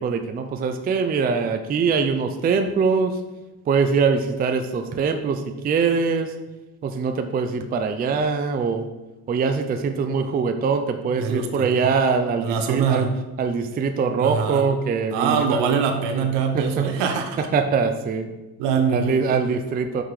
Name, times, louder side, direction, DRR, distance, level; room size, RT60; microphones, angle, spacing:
voice 1, 0.0-3.2 3.7-6.3 6.8-8.9 9.3-13.1 13.4-15.6 16.1-16.3 16.5-16.9 17.4-18.3 18.9-20.0, right 5 dB, 20° right, 6 dB, 0.4 m, -23 dB
voice 2, 11.2-11.6 12.4-13.1 14.2-14.7 15.1-17.5 18.6-19.5, right 6 dB, 70° right, 5 dB, 1.1 m, -23 dB
5.8 x 5.0 x 4.8 m, 1.1 s
cardioid pair, 120°, 43 cm